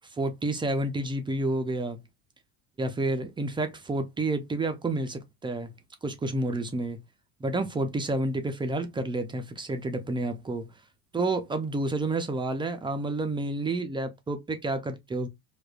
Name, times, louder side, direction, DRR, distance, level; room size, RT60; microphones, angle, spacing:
voice 1, 0.1-2.0 2.8-5.7 6.0-7.0 7.4-10.7 11.1-15.3, right 2 dB, 10° right, 0.3 m, -29 dB
4.9 x 2.2 x 2.3 m
supercardioid pair, 110°, 46 cm